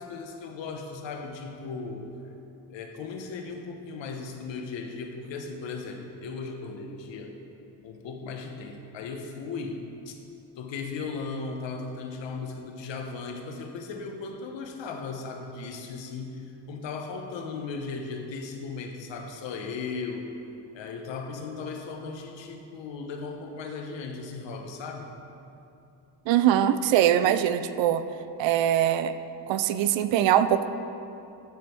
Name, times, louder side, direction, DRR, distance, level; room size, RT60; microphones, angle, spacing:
voice 1, 0.0-2.1 2.7-7.4 7.8-10.1 10.6-20.3 20.7-25.2, left 4 dB, 85° left, 4 dB, 1.1 m, -37 dB
voice 2, 26.3-28.0 28.4-29.1 29.5-30.7, right 11 dB, 85° right, 11 dB, 0.5 m, -22 dB
11.5 x 5.3 x 4.5 m, 2.7 s
cardioid pair, 155°, 43 cm